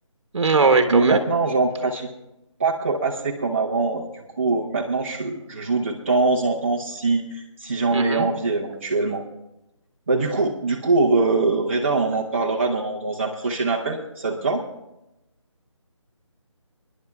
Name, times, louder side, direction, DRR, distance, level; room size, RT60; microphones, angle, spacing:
voice 1, 0.3-1.2 7.9-8.3, right 4 dB, 60° right, 7 dB, 1.1 m, -19 dB
voice 2, 0.9-2.1 2.6-9.2 10.1-14.6, right 3 dB, 25° right, -4 dB, 0.7 m, -23 dB
29.5 x 10.5 x 2.3 m, 0.93 s
figure-of-eight pair, 170°, 17 cm